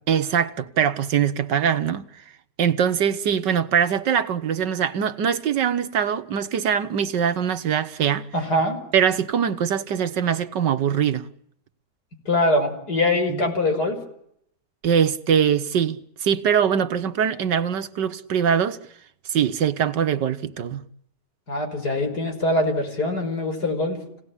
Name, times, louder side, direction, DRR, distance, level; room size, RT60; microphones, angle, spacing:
voice 1, 0.1-2.1 2.6-8.3 8.9-11.3 13.3-13.4 14.8-18.8 19.3-20.8, right 8 dB, 80° right, 1.9 m, -22 dB
voice 2, 8.3-8.8 12.3-14.0 21.5-24.0, left 1 dB, 65° left, 6.3 m, -23 dB
28.5 x 18.5 x 9.8 m
omnidirectional pair, 1.9 m